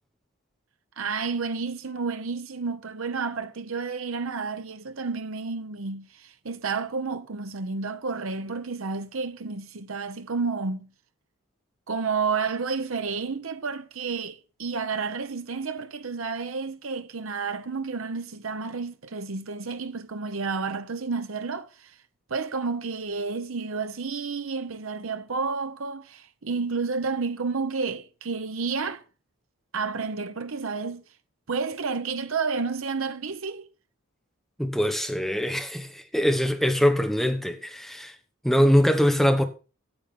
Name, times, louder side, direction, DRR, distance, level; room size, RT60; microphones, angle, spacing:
voice 1, 1.0-10.9 11.9-21.9 22.3-29.0 29.7-31.0 31.5-33.7, right 4 dB, 75° right, 0.8 m, -31 dB
voice 2, 34.6-38.2 38.4-39.4, equal, ahead, 1.1 m, -23 dB
9.0 x 7.4 x 5.4 m
head